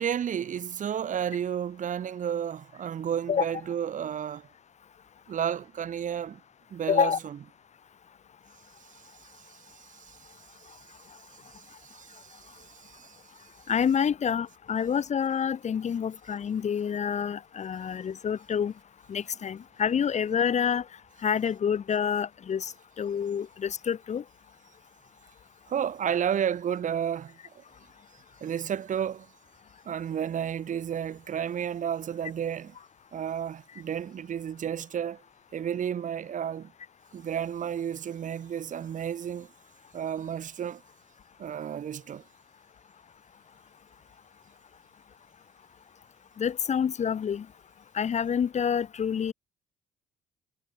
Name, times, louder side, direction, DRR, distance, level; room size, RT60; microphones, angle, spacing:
voice 1, 0.0-4.5 5.3-6.4 6.7-7.4 8.9-10.8 11.5-13.2 25.7-27.6 28.4-29.3 29.8-32.8 33.1-35.2 35.5-36.7 37.1-39.5 39.9-40.8 41.4-42.2, right 9 dB, 50° right, 5.0 m, -32 dB
voice 2, 6.9-7.2 13.7-18.7 19.1-20.8 21.2-22.7 23.0-24.2 46.4-47.5 47.9-49.3, left 7 dB, 40° left, 5.5 m, -27 dB
cardioid pair, 110°, 17 cm